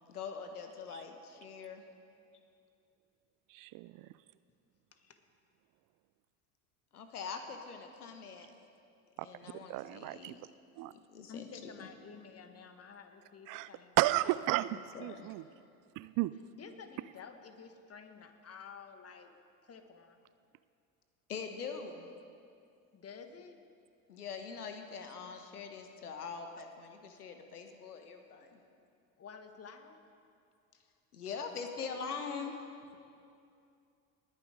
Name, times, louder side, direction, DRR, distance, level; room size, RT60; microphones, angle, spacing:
voice 1, 0.1-1.8 6.9-8.5 9.2-10.5 10.9-11.5 11.8-11.9 14.7-15.3 21.3-22.1 24.1-28.6 31.1-32.6, left 5 dB, 90° left, 6 dB, 1.3 m, -43 dB
voice 2, 3.5-4.1 9.5-10.4 10.8-10.9 13.5-13.7 14.0-15.4 16.0-16.3, right 17 dB, 50° right, 16 dB, 0.4 m, -33 dB
voice 3, 11.3-13.9 16.5-19.3 19.6-20.2 22.9-23.6 29.2-30.0, left 5 dB, 35° left, 7 dB, 1.5 m, -51 dB
19.5 x 10.0 x 5.0 m, 2.5 s
hypercardioid pair, 70°, 44 cm